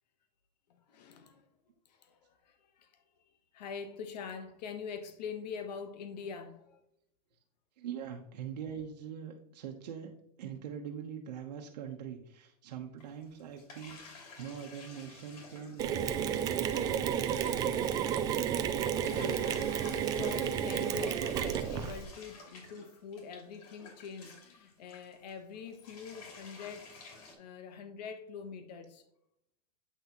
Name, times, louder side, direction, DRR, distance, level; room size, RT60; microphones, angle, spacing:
voice 1, 0.7-1.4 1.9-3.0 3.5-6.8 18.8-27.0 27.4-29.0, left 6 dB, 85° left, 1.2 m, -44 dB
voice 2, 7.8-10.1 10.4-14.0 14.4-17.7, right 8 dB, 85° right, 1.1 m, -43 dB
sound 1, 13.0-18.6 18.9-27.3, left 3 dB, 65° left, 2.8 m, -52 dB
Mechanisms, 15.8-22.0, right 9 dB, 20° right, 0.4 m, -31 dB
8.9 x 5.8 x 3.0 m
supercardioid pair, 165°, 21 cm